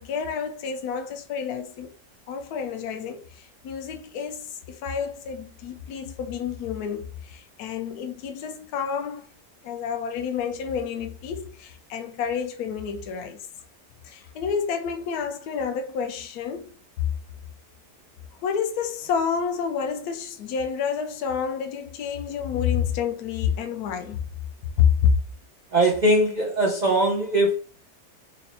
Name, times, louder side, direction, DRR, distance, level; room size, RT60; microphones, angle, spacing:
voice 1, 0.0-1.9 2.3-9.3 9.6-13.4 14.0-16.8 18.4-24.2 24.8-25.1, left 7 dB, 75° left, 1.1 m, -28 dB
voice 2, 25.7-27.6, right 1 dB, 85° right, 0.3 m, -21 dB
4.3 x 2.1 x 4.0 m
omnidirectional pair, 1.8 m